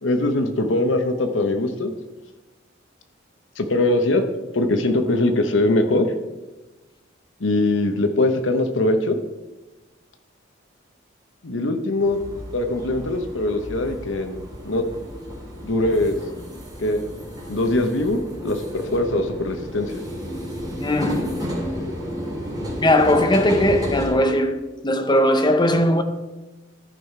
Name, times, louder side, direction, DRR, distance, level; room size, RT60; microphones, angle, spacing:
voice 1, 0.0-1.9 3.6-4.2 4.5-6.1 7.4-9.2 11.4-12.2 12.5-14.4 14.6-14.8 15.6-16.2 16.8-17.0 17.5-20.0, left 2 dB, 75° left, 0.9 m, -21 dB
sound 1, 12.0-24.1, equal, 20° right, 3.4 m, -32 dB
voice 2, 20.8-21.4 22.8-26.0, left 1 dB, 20° left, 0.7 m, -19 dB
13.5 x 5.7 x 4.5 m
head